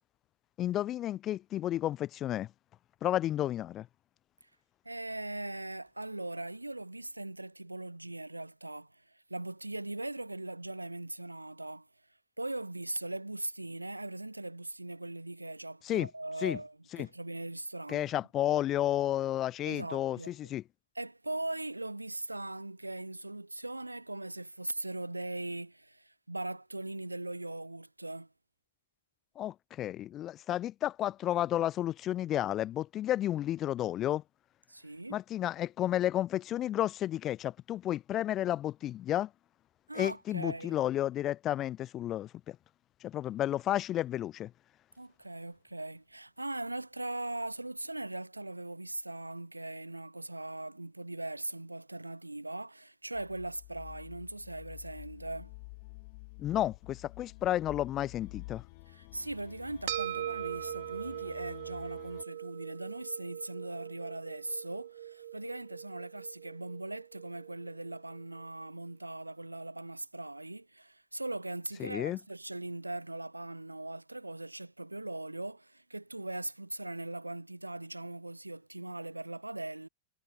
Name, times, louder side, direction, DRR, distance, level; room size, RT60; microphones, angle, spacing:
voice 1, 0.6-2.5 3.0-3.9 15.8-16.1 16.4-16.6 16.9-17.1 17.9-20.6 29.4-34.2 35.1-39.3 40.0-42.6 43.0-44.5 56.4-58.6 71.8-72.2, left 12 dB, 30° left, 0.4 m, -32 dB
voice 2, 4.8-11.9 12.4-18.1 19.7-20.5 20.9-28.3 34.7-35.2 39.9-40.8 45.0-55.5 58.9-79.9, right 2 dB, 85° right, 1.0 m, -40 dB
sound 1, 53.1-62.2, left 29 dB, 45° left, 3.5 m, -50 dB
sound 2, 59.9-68.5, right 12 dB, 60° right, 2.0 m, -41 dB
figure-of-eight pair, 90°, 0 cm